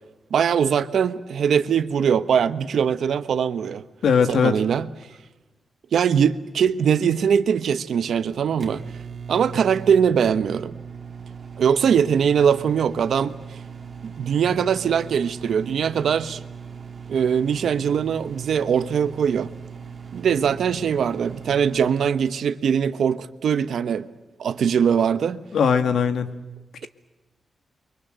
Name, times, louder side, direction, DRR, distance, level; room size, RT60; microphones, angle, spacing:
voice 1, 0.3-3.8 4.3-4.9 5.9-8.8 9.3-10.7 11.6-13.3 14.0-16.4 17.1-19.5 20.1-24.1 24.4-25.4, right 7 dB, 65° right, 1.1 m, -21 dB
voice 2, 4.0-4.6 25.5-26.3, left 6 dB, 75° left, 1.9 m, -19 dB
Microwave oven, 7.0-22.1, right 6 dB, 35° right, 2.4 m, -39 dB
30.0 x 23.5 x 7.7 m
wide cardioid pair, 175°, 0 cm